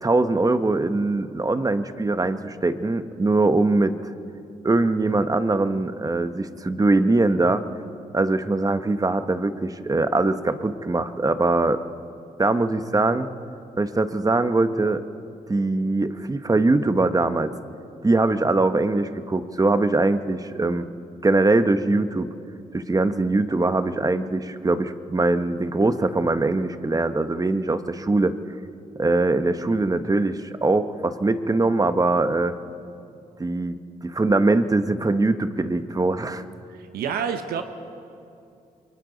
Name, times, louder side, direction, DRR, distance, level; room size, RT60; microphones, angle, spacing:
voice 1, 0.0-3.9 4.6-7.6 8.1-11.8 12.4-13.3 13.8-15.0 15.5-17.5 18.0-20.9 21.2-22.3 22.7-28.3 29.0-32.6 33.4-36.4, right 2 dB, 25° right, 10 dB, 1.1 m, -22 dB
voice 2, 36.7-37.6, right 7 dB, 80° right, 7 dB, 1.0 m, -28 dB
28.5 x 23.0 x 4.1 m, 2.5 s
supercardioid pair, 60°, 15 cm